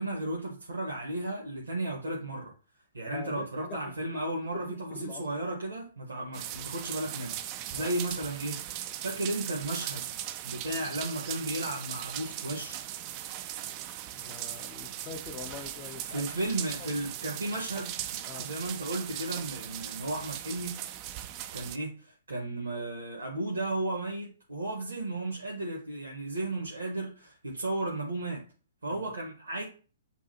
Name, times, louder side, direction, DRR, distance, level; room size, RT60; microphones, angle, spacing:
voice 1, 0.0-2.5 2.9-7.4 7.7-12.8 16.1-17.9 18.2-20.7 21.5-28.4 28.8-29.6, right 1 dB, 70° right, 1.1 m, -34 dB
voice 2, 3.1-4.2 4.7-5.2 7.8-7.9 14.2-16.3 16.8-16.9 18.3-18.5 28.9-29.1, left 5 dB, 25° left, 0.6 m, -44 dB
sound 1, 6.3-21.8, right 12 dB, 30° right, 0.4 m, -39 dB
7.1 x 2.4 x 2.8 m
figure-of-eight pair, 115°, 0 cm